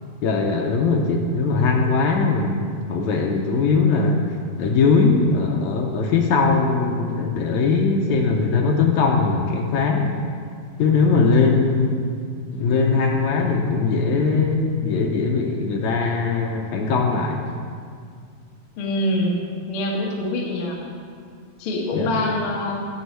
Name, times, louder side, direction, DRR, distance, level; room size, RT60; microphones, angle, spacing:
voice 1, 0.2-4.2 4.6-10.1 10.8-12.1 12.5-17.4 21.9-22.1, left 4 dB, 85° left, 1 dB, 1.6 m, -20 dB
voice 2, 18.8-19.4 19.7-20.8 21.6-22.7, left 1 dB, 60° left, -1 dB, 1.5 m, -24 dB
9.8 x 5.6 x 8.1 m, 2.2 s
omnidirectional pair, 4.1 m